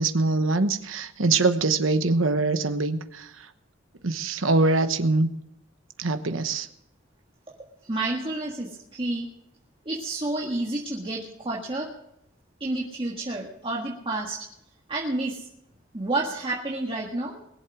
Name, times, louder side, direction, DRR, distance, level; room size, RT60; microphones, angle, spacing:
voice 1, 0.0-3.5 4.0-5.3 6.0-6.7, right 3 dB, 75° right, 9 dB, 1.1 m, -23 dB
voice 2, 7.9-9.3 9.8-11.9 12.6-14.4 14.9-15.4 15.9-17.4, right 2 dB, 25° right, -3 dB, 1.7 m, -29 dB
20.5 x 7.9 x 6.2 m, 0.78 s
head